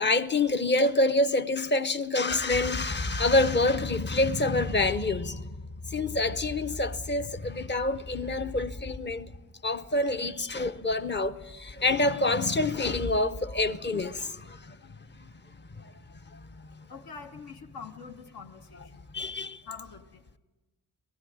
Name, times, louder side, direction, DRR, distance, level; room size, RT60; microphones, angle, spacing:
voice 1, 0.0-5.6 5.9-9.3 9.6-14.8 15.8-15.9 16.3-16.6 19.1-19.6, left 2 dB, 30° left, 0.8 m, -27 dB
voice 2, 16.9-18.8 19.7-20.0, left 5 dB, 70° left, 1.5 m, -44 dB
19.5 x 15.5 x 9.4 m
wide cardioid pair, 120°, 38 cm